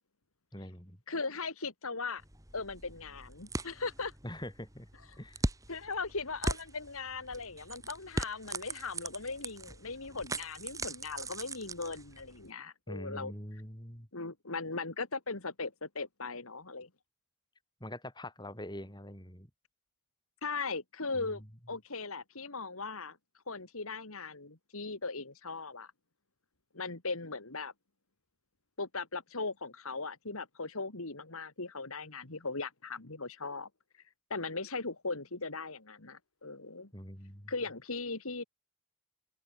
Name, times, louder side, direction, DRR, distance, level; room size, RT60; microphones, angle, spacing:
voice 1, 0.5-1.0 4.2-4.9 5.2-5.4 12.9-14.1 17.8-19.5 21.1-21.5 36.9-37.5, left 1 dB, 20° left, 7.2 m, -44 dB
voice 2, 1.1-2.2 2.5-4.1 5.7-13.3 14.1-16.9 20.4-21.4 21.7-23.2 23.5-25.9 26.7-27.7 28.8-33.7 34.3-36.9 37.5-38.4, left 3 dB, 70° left, 2.5 m, -38 dB
sound 1, 2.2-12.5, right 2 dB, 15° right, 3.0 m, -40 dB
head